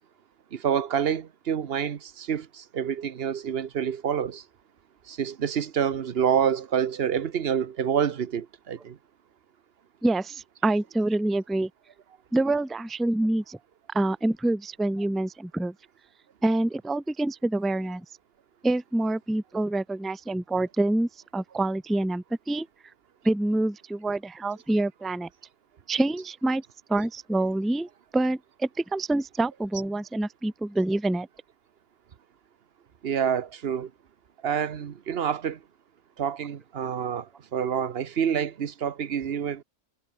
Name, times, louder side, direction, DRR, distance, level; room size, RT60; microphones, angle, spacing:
voice 1, 0.5-4.4 5.1-9.0 33.0-33.9 34.4-35.6 36.2-39.6, right 8 dB, 55° right, 1.1 m, -27 dB
voice 2, 10.0-11.7 12.3-13.6 13.9-15.7 16.4-18.1 18.6-22.7 23.2-25.3 25.9-26.6 26.9-31.3, right 2 dB, ahead, 0.4 m, -26 dB
omnidirectional pair, 1.3 m